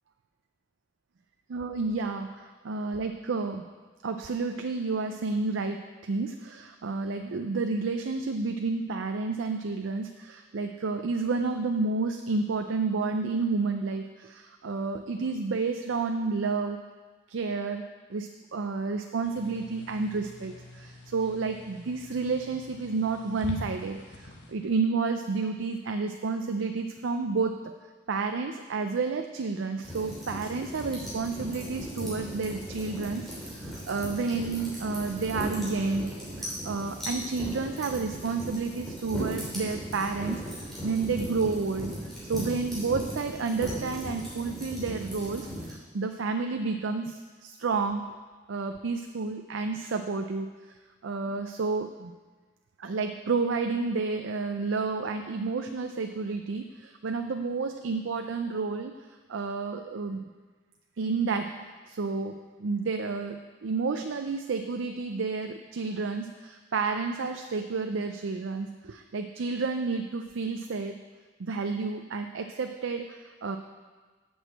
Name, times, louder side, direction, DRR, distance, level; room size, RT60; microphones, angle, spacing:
voice 1, 1.5-3.7 4.0-16.8 17.3-27.7 28.1-36.1 36.4-41.9 42.2-48.2 48.5-50.7 51.0-52.1 52.8-58.9 59.3-60.3 61.0-71.0 71.4-73.6, right 4 dB, 90° right, 6 dB, 0.5 m, -30 dB
sound 1, 19.2-24.5, left 1 dB, 70° left, 1.3 m, -44 dB
sound 2, 29.8-45.7, equal, ahead, 3.1 m, -37 dB
7.9 x 6.3 x 7.6 m, 1.4 s
head